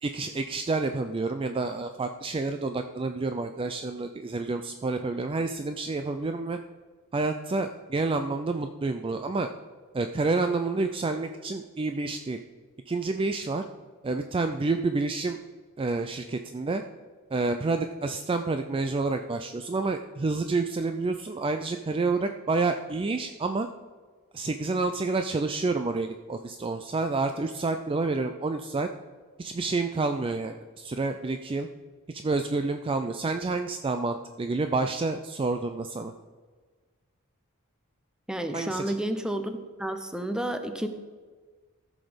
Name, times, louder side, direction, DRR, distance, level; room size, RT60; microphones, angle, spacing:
voice 1, 0.0-6.6 7.1-9.5 9.9-12.4 12.9-13.6 14.0-15.4 15.8-16.8 17.3-23.7 24.3-28.9 29.4-31.7 32.2-36.1 38.5-38.9, right 3 dB, 25° right, 7 dB, 0.4 m, -29 dB
voice 2, 38.3-39.5 39.8-40.9, right 1 dB, 5° right, 7 dB, 0.7 m, -30 dB
14.0 x 6.2 x 5.1 m, 1.5 s
head